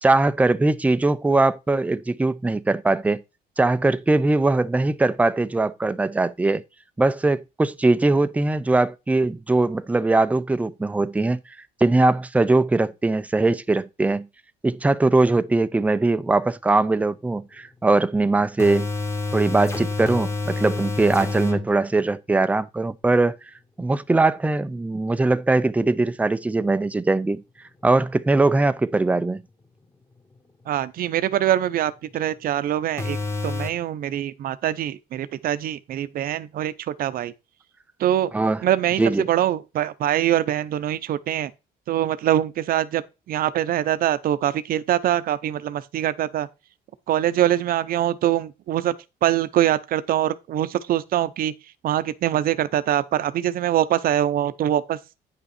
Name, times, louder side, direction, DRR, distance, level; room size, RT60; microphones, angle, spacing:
voice 1, 0.0-3.2 3.6-6.6 7.0-11.4 11.8-14.3 14.6-18.9 19.3-23.4 23.8-27.4 27.8-29.4 38.3-38.6 39.0-39.3, right 2 dB, 10° right, 0.5 m, -21 dB
sound 1, 18.6-21.7 33.0-33.7, left 3 dB, 15° left, 1.5 m, -28 dB
voice 2, 30.7-33.2 33.4-37.3 38.0-38.3 38.6-41.5 41.9-46.5 47.1-48.9 49.2-51.5 51.8-55.0, right 12 dB, 60° right, 0.7 m, -23 dB
9.4 x 5.5 x 4.3 m
cardioid pair, 110°, 17 cm